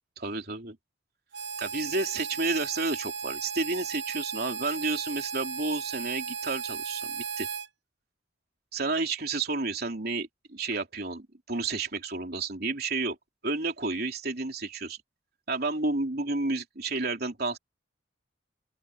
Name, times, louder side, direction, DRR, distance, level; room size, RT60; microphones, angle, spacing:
voice 1, 0.2-0.8 1.6-7.5 8.7-13.2 13.4-15.0 15.5-17.6, right 3 dB, 55° right, 3.4 m, -31 dB
Harmonica, 1.3-7.7, right 6 dB, 75° right, 0.8 m, -36 dB
open air
head